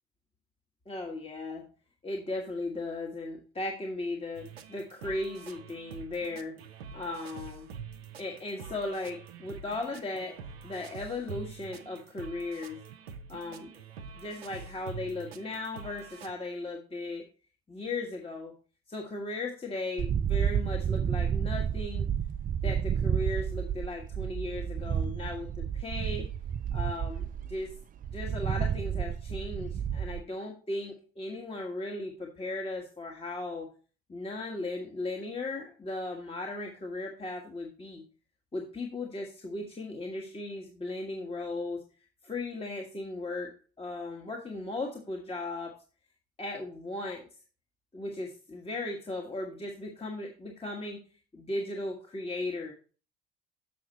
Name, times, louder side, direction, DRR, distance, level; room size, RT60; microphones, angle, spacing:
voice 1, 0.9-1.7 2.0-6.6 6.9-7.7 8.2-10.4 10.6-12.8 13.3-13.7 14.1-17.2 17.7-18.5 18.9-22.1 22.6-26.3 26.7-27.7 28.1-33.7 34.1-38.0 38.5-41.8 42.2-43.5 43.8-45.7 46.4-47.3 47.9-51.0 51.3-52.7, left 2 dB, 20° left, 0 dB, 1.5 m, -37 dB
sound 1, 4.3-16.3, right 6 dB, 85° right, 0.6 m, -46 dB
sound 2, 20.0-30.2, right 8 dB, 30° right, 0.4 m, -31 dB
7.0 x 5.9 x 4.0 m, 0.38 s
figure-of-eight pair, 50°, 30 cm